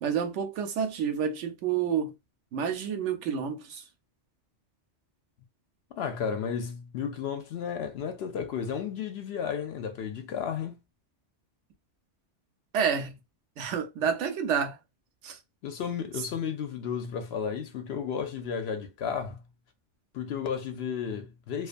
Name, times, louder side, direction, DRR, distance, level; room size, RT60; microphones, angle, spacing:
voice 1, 0.0-2.1 2.5-3.8 12.7-13.1 13.6-14.8 15.2-15.4, right 7 dB, 75° right, 0.9 m, -29 dB
voice 2, 5.9-10.8 15.6-19.4 20.1-21.7, left 7 dB, 65° left, 0.7 m, -33 dB
2.4 x 2.3 x 2.4 m
omnidirectional pair, 1.2 m